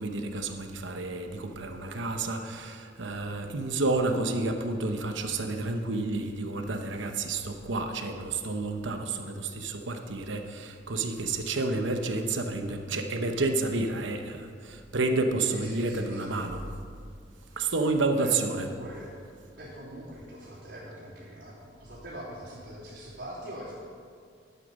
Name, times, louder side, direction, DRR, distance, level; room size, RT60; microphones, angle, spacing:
voice 1, 0.0-16.6 17.6-18.7, right 3 dB, 85° right, 5 dB, 0.9 m, -30 dB
voice 2, 15.4-16.5 17.6-17.8 18.2-19.1 19.5-23.7, equal, 65° right, -12 dB, 3.0 m, -43 dB
11.5 x 8.3 x 5.4 m, 2.2 s
head